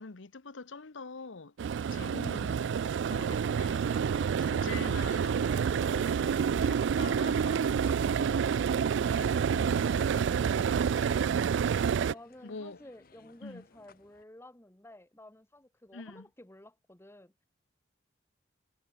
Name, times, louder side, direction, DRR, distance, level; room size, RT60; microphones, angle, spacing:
voice 1, 0.0-1.5 1.9-8.6 9.6-10.1 10.4-11.4 12.4-12.8 13.4-13.6 15.9-16.3, left 4 dB, 75° left, 1.0 m, -46 dB
sound 1, 1.6-12.1, right 7 dB, 65° right, 0.3 m, -28 dB
sound 2, 3.6-14.2, left 5 dB, 50° left, 0.8 m, -55 dB
voice 2, 12.0-17.3, left 1 dB, 15° left, 1.3 m, -53 dB
head